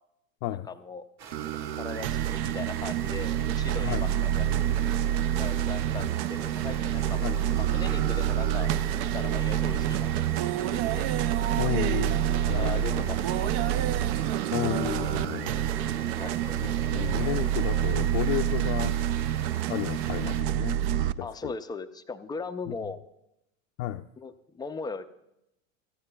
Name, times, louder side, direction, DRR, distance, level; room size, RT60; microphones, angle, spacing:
voice 1, 0.5-1.0 1.8-4.5 4.8-5.0 5.3-8.7 9.1-10.1 10.4-11.1 12.5-13.8 15.5-15.8 16.2-16.4 21.2-23.0 24.2-25.0, left 4 dB, 10° left, 9 dB, 0.4 m, -39 dB
sound 1, 1.2-20.4, right 6 dB, 45° right, 1.5 m, -45 dB
sound 2, 1.3-21.1, right 11 dB, 60° right, 0.5 m, -27 dB
sound 3, 2.2-19.9, right 3 dB, 15° right, 0.8 m, -45 dB
voice 2, 11.6-12.2 12.5-13.0 14.5-15.5 16.9-19.0 19.7-20.8 21.2-21.5 22.7-22.8 23.8-24.0, left 15 dB, 60° left, 5 dB, 0.6 m, -32 dB
24.5 x 14.5 x 2.3 m, 0.85 s
supercardioid pair, 115°, 40 cm